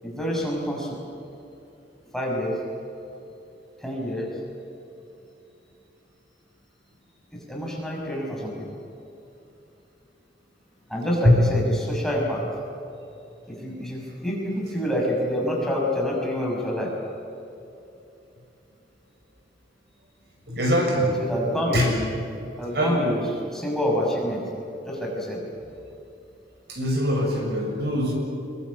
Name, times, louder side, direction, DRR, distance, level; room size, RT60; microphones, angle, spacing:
voice 1, 0.0-1.0 2.1-2.6 3.8-4.3 7.3-8.7 10.9-12.4 13.5-16.9 21.2-22.1 22.6-23.2 23.5-24.4 24.8-25.4, equal, ahead, -2 dB, 6.2 m, -27 dB
voice 2, 20.5-21.2 21.7-21.9 22.7-23.0 26.7-28.1, equal, 65° right, 1 dB, 7.0 m, -22 dB
25.5 x 23.0 x 8.5 m, 2.8 s
head